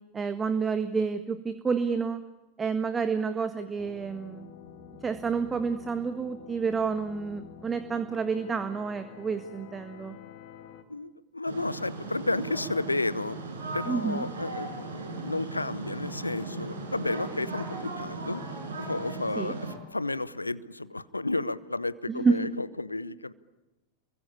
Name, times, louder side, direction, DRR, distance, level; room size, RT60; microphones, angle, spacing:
voice 1, 0.1-2.2 2.6-4.5 5.0-10.2 13.9-14.2 19.4-19.5 22.1-22.4, right 5 dB, 15° right, 10 dB, 1.6 m, -29 dB
sound 1, 3.8-10.8, left 7 dB, 45° left, 2.9 m, -48 dB
voice 2, 10.9-13.4 13.7-18.4 18.8-23.3, left 2 dB, 85° left, 19 dB, 1.0 m, -32 dB
sound 2, 11.4-19.7, right 3 dB, 65° right, 5.9 m, -37 dB
29.5 x 23.0 x 8.7 m, 1.1 s
figure-of-eight pair, 90°, 0 cm